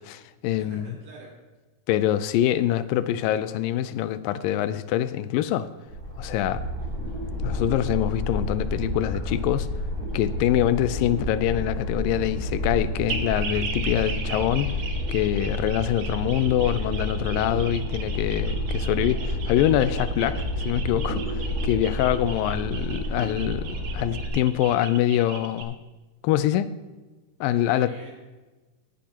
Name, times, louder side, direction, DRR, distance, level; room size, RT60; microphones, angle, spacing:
voice 1, 0.0-0.9 1.9-5.7 6.2-6.6 7.4-9.7 10.1-14.8 15.1-20.3 20.7-23.7 23.9-25.8 26.2-26.7 27.4-27.9, left 12 dB, 85° left, 2.3 m, -24 dB
voice 2, 0.5-1.4 20.1-20.4 27.5-28.1, right 2 dB, 85° right, 5.5 m, -46 dB
sound 1, 5.9-24.3, equal, 25° right, 3.3 m, -30 dB
sound 2, 13.1-25.6, right 5 dB, 65° right, 1.4 m, -38 dB
17.0 x 9.9 x 2.9 m
omnidirectional pair, 3.9 m